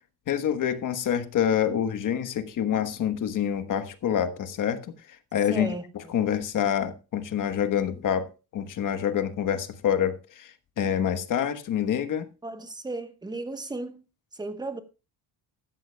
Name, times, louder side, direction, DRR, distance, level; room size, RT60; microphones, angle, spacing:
voice 1, 0.3-4.8 5.3-5.7 6.1-8.3 8.5-12.3, left 9 dB, 50° left, 1.2 m, -26 dB
voice 2, 5.5-6.1 12.4-14.0 14.3-14.8, right 2 dB, 10° right, 1.0 m, -35 dB
15.0 x 13.0 x 2.2 m
cardioid pair, 155°, 41 cm